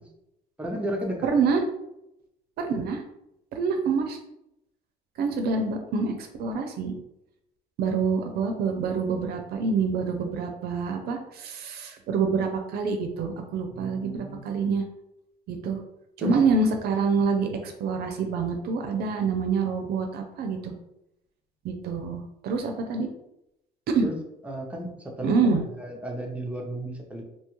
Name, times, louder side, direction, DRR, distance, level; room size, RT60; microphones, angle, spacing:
voice 1, 0.6-1.3 13.7-14.4 16.2-16.4 24.0-24.1 24.4-27.2, right 1 dB, 10° right, 0 dB, 0.6 m, -33 dB
voice 2, 1.2-1.6 2.6-3.0 3.5-4.2 5.2-6.9 7.8-14.8 15.5-15.8 16.2-20.7 21.6-23.1 23.9-24.1 25.2-25.6, right 4 dB, 70° right, 5 dB, 0.5 m, -26 dB
2.8 x 2.3 x 3.0 m, 0.83 s
cardioid pair, 110°, 17 cm